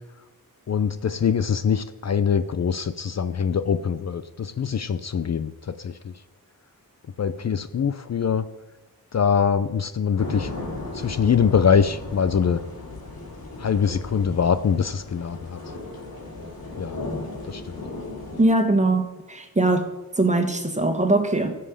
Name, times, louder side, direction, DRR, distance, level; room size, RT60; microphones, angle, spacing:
voice 1, 0.7-5.5 5.8-6.1 7.2-8.5 9.1-10.5 10.9-12.6 13.6-15.6 16.8-17.0 17.5-17.8, left 7 dB, 45° left, 12 dB, 0.6 m, -23 dB
sound 1, 10.2-18.4, left 2 dB, 70° left, 3.8 m, -36 dB
voice 2, 18.4-19.0 19.3-19.9 20.2-21.6, right 2 dB, 20° right, 6 dB, 1.7 m, -21 dB
15.0 x 5.6 x 6.5 m, 1.1 s
wide cardioid pair, 90°, 36 cm